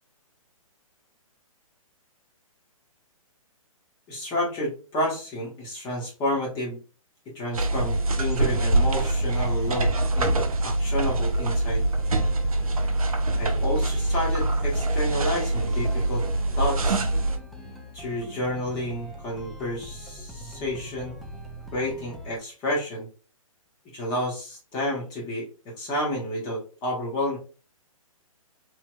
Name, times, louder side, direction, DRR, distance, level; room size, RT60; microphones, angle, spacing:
voice 1, 4.1-6.8 7.3-11.8 13.4-16.2 16.6-17.1 17.9-21.1 21.7-23.1 23.9-25.5 25.8-27.4, left 1 dB, 25° left, -3 dB, 1.1 m, -30 dB
sound 1, 7.5-17.4, right 2 dB, 80° right, 0.6 m, -24 dB
sound 2, 7.8-22.4, left 1 dB, ahead, 0.3 m, -41 dB
3.1 x 2.7 x 2.2 m, 0.35 s
figure-of-eight pair, 130°, 18 cm